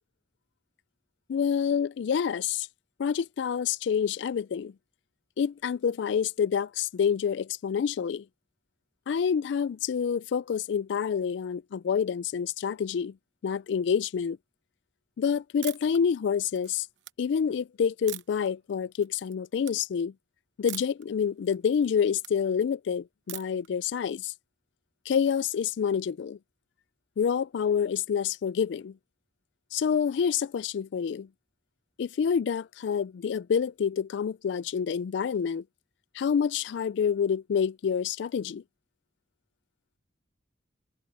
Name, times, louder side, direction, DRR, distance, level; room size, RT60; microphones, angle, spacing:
voice 1, 1.3-2.7 3.0-4.7 5.4-8.2 9.1-13.1 13.4-14.4 15.2-16.9 17.2-20.1 20.6-24.3 25.1-26.4 27.2-29.0 29.7-31.3 32.0-35.6 36.1-38.6, left 7 dB, 65° left, 0.3 m, -27 dB
sound 1, 15.6-16.0 16.4-17.1 18.1-18.5 18.9-19.3 19.6-19.8 20.7-21.0 21.4-22.3 23.3-23.7, right 15 dB, 75° right, 0.9 m, -41 dB
head